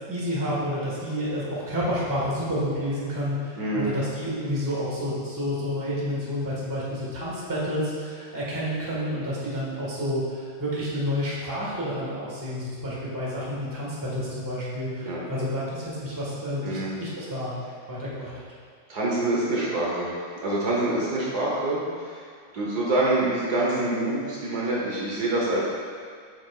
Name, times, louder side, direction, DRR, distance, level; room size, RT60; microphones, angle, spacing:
voice 1, 0.1-17.6 17.9-18.3, equal, 10° right, -7 dB, 1.4 m, -29 dB
voice 2, 3.6-3.9 15.0-15.2 16.6-16.9 18.9-22.2 22.5-25.6, right 2 dB, 60° right, -5 dB, 1.5 m, -26 dB
8.6 x 6.2 x 2.4 m, 2.1 s
omnidirectional pair, 2.0 m